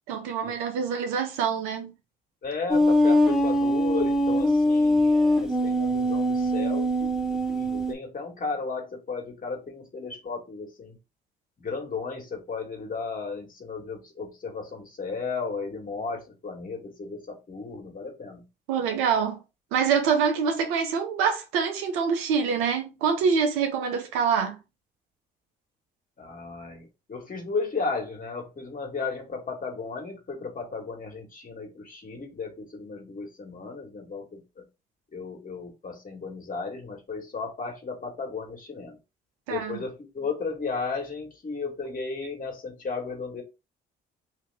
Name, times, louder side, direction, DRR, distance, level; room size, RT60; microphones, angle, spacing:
voice 1, 0.1-1.9 18.7-19.4 19.7-24.6 39.5-39.8, right 6 dB, 80° right, 0.9 m, -25 dB
voice 2, 2.4-11.0 11.6-18.4 26.2-34.4 35.1-39.0 39.5-43.4, left 4 dB, 40° left, 1.7 m, -34 dB
sound 1, 2.7-7.9, equal, 5° right, 1.0 m, -22 dB
3.5 x 2.8 x 3.5 m
hypercardioid pair, 55°, 21 cm